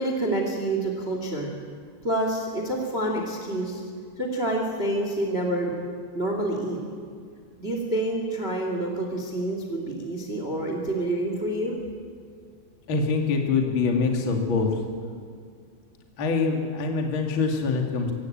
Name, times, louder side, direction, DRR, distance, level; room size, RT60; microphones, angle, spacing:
voice 1, 0.0-1.5 2.0-3.8 4.1-5.7 6.1-6.8 7.6-11.7, right 1 dB, 45° right, 2 dB, 0.7 m, -27 dB
voice 2, 12.9-14.7 16.2-18.1, left 4 dB, 45° left, 2 dB, 1.7 m, -24 dB
24.5 x 16.5 x 8.7 m, 2.2 s
omnidirectional pair, 6.0 m